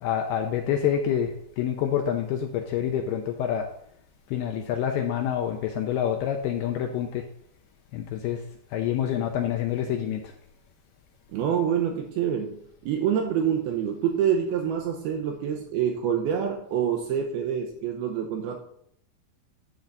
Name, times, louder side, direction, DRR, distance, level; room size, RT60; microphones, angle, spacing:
voice 1, 0.0-3.6 4.3-7.2 7.9-8.4 8.7-10.2, left 9 dB, 80° left, 3 dB, 2.3 m, -27 dB
voice 2, 11.3-18.6, right 8 dB, 75° right, 3 dB, 2.4 m, -26 dB
10.5 x 3.9 x 7.2 m, 0.72 s
omnidirectional pair, 5.2 m